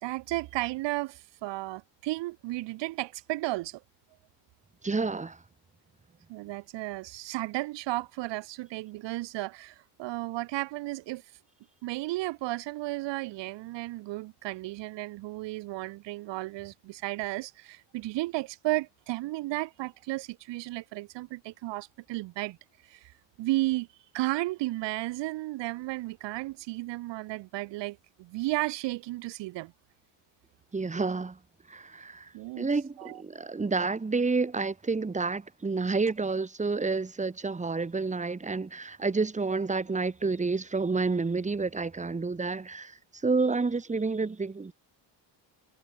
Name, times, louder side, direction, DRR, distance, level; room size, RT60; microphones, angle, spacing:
voice 1, 0.0-3.8 6.3-11.2 11.8-22.6 22.8-23.9 24.1-29.7 32.3-32.7 33.0-33.2, right 19 dB, 75° right, 1.3 m, -33 dB
voice 2, 4.8-5.4 30.7-31.4 31.7-44.7, right 4 dB, 15° right, 2.2 m, -29 dB
cardioid pair, 115°, 43 cm